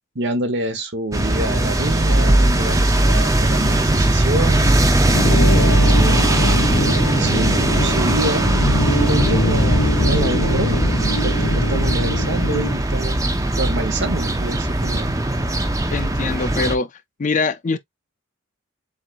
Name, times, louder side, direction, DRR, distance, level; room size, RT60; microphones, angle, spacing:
voice 1, 0.1-6.3 7.2-10.8 11.2-15.1, right 2 dB, 55° right, 1.2 m, -27 dB
sound 1, 1.1-16.8, right 1 dB, 15° right, 0.6 m, -19 dB
sound 2, 5.1-12.7, left 1 dB, 85° left, 2.0 m, -23 dB
voice 2, 15.9-16.9 17.2-17.8, left 4 dB, 35° left, 0.4 m, -22 dB
7.3 x 2.7 x 2.5 m
head